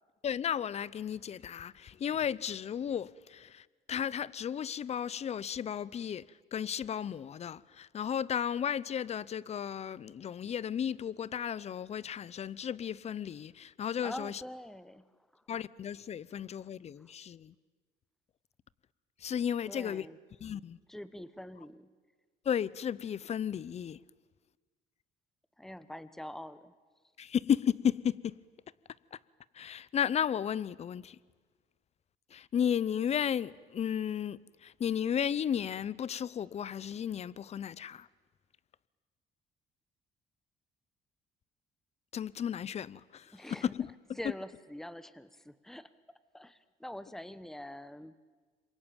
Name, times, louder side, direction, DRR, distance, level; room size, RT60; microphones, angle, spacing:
voice 1, 0.2-6.2 6.5-14.4 15.5-17.5 19.2-20.1 20.4-20.8 22.4-24.0 27.2-28.3 29.1-29.2 29.5-31.2 32.3-38.1 42.1-43.9, left 8 dB, 40° left, 0.7 m, -34 dB
voice 2, 14.0-15.4 19.6-20.2 20.9-21.9 25.6-26.7 43.3-43.7 44.2-45.9 46.3-48.1, left 1 dB, ahead, 1.0 m, -45 dB
27.0 x 23.0 x 9.1 m
cardioid pair, 110°, 17 cm